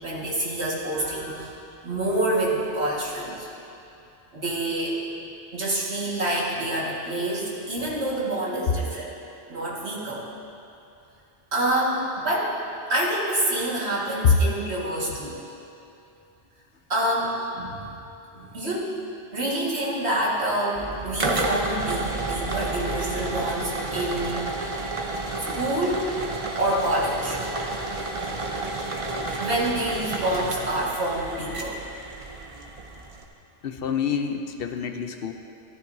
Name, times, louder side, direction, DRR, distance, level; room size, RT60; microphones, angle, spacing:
voice 1, 0.0-1.6 1.8-3.5 4.3-5.0 5.5-9.1 9.5-10.3 11.5-12.6 12.9-15.4 16.9-18.0 18.3-18.9 19.3-24.4 25.4-26.1 26.6-27.4 29.4-31.8, right 1 dB, 85° right, -5 dB, 2.1 m, -27 dB
sound 1, 20.7-33.2, right 2 dB, 35° right, 0.7 m, -31 dB
voice 2, 33.6-35.3, left 6 dB, 65° left, 6 dB, 0.8 m, -24 dB
13.5 x 13.0 x 2.7 m, 2.8 s
omnidirectional pair, 1.1 m